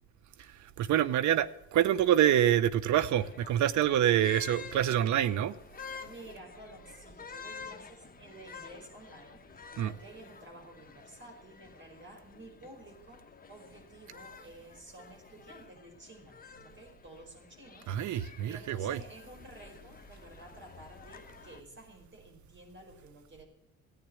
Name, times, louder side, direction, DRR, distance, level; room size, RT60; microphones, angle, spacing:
voice 1, 0.8-5.6 9.8-9.9 17.9-19.0, right 11 dB, 70° right, 0.9 m, -26 dB
sound 1, 2.9-21.6, left 5 dB, 30° left, 1.3 m, -50 dB
voice 2, 6.0-23.4, right 2 dB, 40° right, 4.9 m, -52 dB
14.0 x 9.4 x 8.5 m
cardioid pair, 90°, 30 cm